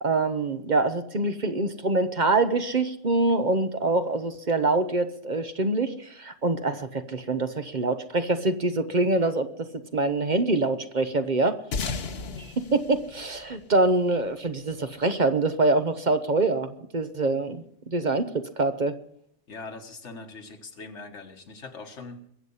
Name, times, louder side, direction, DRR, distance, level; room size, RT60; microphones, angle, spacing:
voice 1, 0.0-9.5 9.9-11.6 12.4-12.5 12.7-18.9, right 2 dB, 40° right, 9 dB, 1.0 m, -25 dB
sound 1, 11.7-14.5, left 4 dB, 60° left, 1.2 m, -35 dB
voice 2, 19.5-22.2, left 3 dB, 75° left, 6 dB, 1.8 m, -41 dB
22.5 x 8.0 x 5.6 m, 0.70 s
omnidirectional pair, 1.2 m